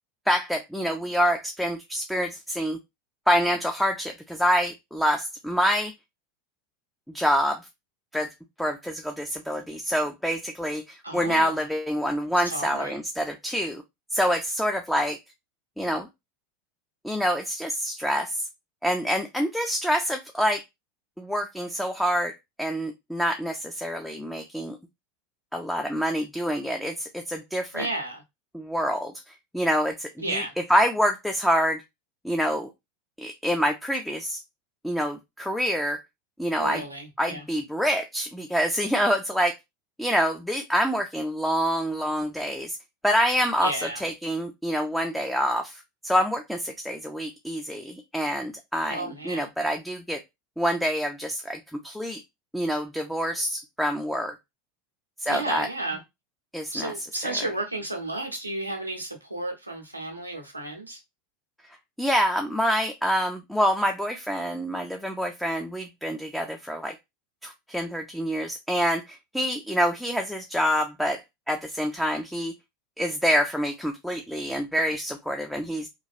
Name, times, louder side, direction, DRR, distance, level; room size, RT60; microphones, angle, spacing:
voice 1, 0.3-2.8 3.3-5.9 7.1-7.7 8.1-8.3 8.6-13.8 14.1-15.2 15.8-16.1 17.0-18.5 18.8-20.6 21.2-24.8 25.5-27.9 28.5-29.1 29.5-30.4 30.7-31.8 32.2-32.7 33.2-34.4 34.8-36.0 36.4-36.8 37.2-39.5 40.0-42.8 43.0-50.2 50.6-52.2 52.5-54.4 55.2-55.7 56.5-56.9 57.2-57.5 62.0-66.9 67.4-72.5 73.0-75.9, equal, ahead, 0.4 m, -26 dB
voice 2, 11.0-11.6 12.5-13.0 27.7-28.2 30.2-30.5 36.5-37.4 43.6-44.0 48.9-49.5 55.3-56.0 56.7-61.0, right 2 dB, 90° right, 0.8 m, -32 dB
3.1 x 2.3 x 2.6 m
figure-of-eight pair, 80°, 0 cm